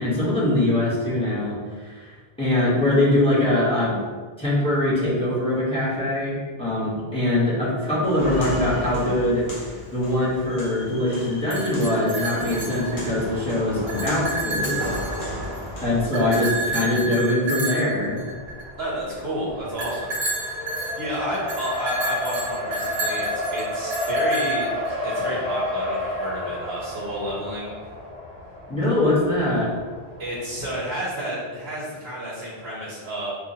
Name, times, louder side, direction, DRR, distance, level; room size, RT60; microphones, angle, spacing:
voice 1, 0.0-2.1 2.4-4.0 4.4-9.5 9.9-14.9 15.8-18.2 28.7-29.7, left 1 dB, 5° left, -8 dB, 1.1 m, -22 dB
Walk footsteps, 8.0-16.8, equal, 55° left, 1.1 m, -35 dB
sound 1, 11.3-13.3 13.7-15.6 16.1-18.9 19.8-24.9, right 2 dB, 55° right, 1.0 m, -30 dB
Race car auto racing, 18.0-30.6, left 1 dB, 80° left, 1.9 m, -31 dB
voice 2, 18.8-20.7 21.0-24.7 25.0-27.7 30.2-33.3, equal, 75° right, -7 dB, 1.0 m, -31 dB
4.8 x 2.4 x 2.7 m, 1.5 s
omnidirectional pair, 1.0 m